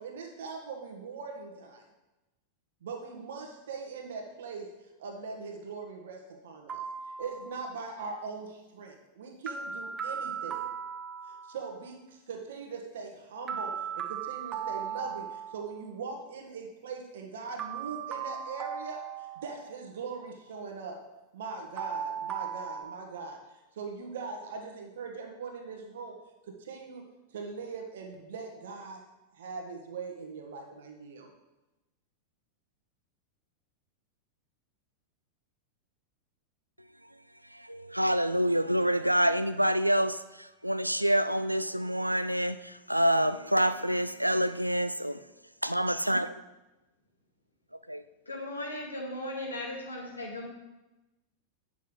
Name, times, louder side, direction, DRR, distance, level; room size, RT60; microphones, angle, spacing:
voice 1, 0.0-1.8 2.8-4.7 5.0-6.8 7.2-10.6 11.3-19.0 19.4-21.0 21.3-23.4 23.7-26.2 26.4-27.0 27.3-29.0 29.3-31.3, right 4 dB, 60° right, 1.5 m, -41 dB
sound 1, 6.7-7.8 9.5-11.8 13.5-15.8 17.6-19.9 21.8-22.8, right 7 dB, 25° right, 0.8 m, -37 dB
voice 2, 37.5-45.1 45.6-46.3 47.9-48.0, equal, 90° right, 0.4 m, -27 dB
voice 3, 48.3-50.5, left 1 dB, 80° left, 2.1 m, -37 dB
9.1 x 6.5 x 3.8 m
figure-of-eight pair, 90°, 0 cm